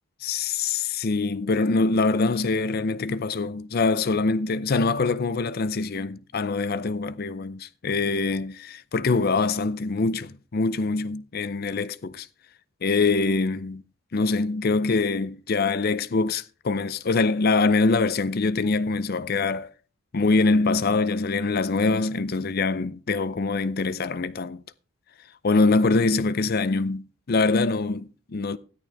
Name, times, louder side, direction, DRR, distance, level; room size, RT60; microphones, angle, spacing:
voice 1, 0.2-12.3 12.8-13.8 14.1-19.7 20.1-24.6 25.4-28.6, left 3 dB, 45° left, 0.5 m, -24 dB
13.5 x 11.0 x 3.4 m
head